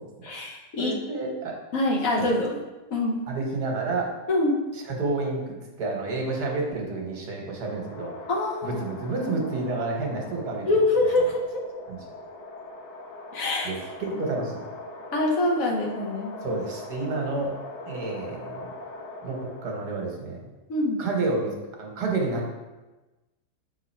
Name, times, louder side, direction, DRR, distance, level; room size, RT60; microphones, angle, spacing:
voice 1, 0.2-1.0 1.7-2.6 2.9-3.3 4.3-4.6 8.3-8.8 10.7-11.6 13.3-13.7 15.1-16.3 20.7-21.0, left 2 dB, 60° left, -1 dB, 1.2 m, -24 dB
voice 2, 0.8-1.6 2.2-2.3 3.3-4.1 4.7-8.1 8.6-10.7 11.9-12.0 13.6-14.6 16.4-17.6 17.9-18.7 19.2-20.4 21.0-21.5 21.8-22.6, right 3 dB, 75° right, 0 dB, 1.6 m, -29 dB
sound 1, 7.5-20.0, left 2 dB, 90° left, 1.4 m, -41 dB
6.1 x 3.6 x 4.3 m, 1.1 s
omnidirectional pair, 1.7 m